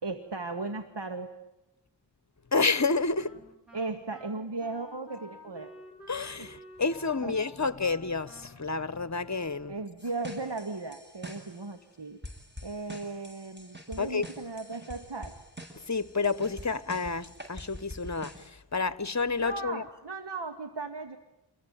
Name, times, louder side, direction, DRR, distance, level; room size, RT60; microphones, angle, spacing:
voice 1, 0.0-1.3 3.7-5.7 6.4-6.5 7.2-7.4 9.7-12.2 12.6-15.4 19.4-21.2, right 3 dB, 70° right, 2.1 m, -36 dB
voice 2, 2.5-3.4 6.1-9.7 14.0-14.3 15.9-19.8, left 4 dB, 40° left, 1.2 m, -29 dB
Wind instrument woodwind instrument, 2.7-10.1, equal, ahead, 6.2 m, -53 dB
sound 1, 10.0-11.7 12.2-18.5, equal, 25° right, 7.9 m, -46 dB
29.0 x 22.5 x 9.2 m
wide cardioid pair, 40°, 44 cm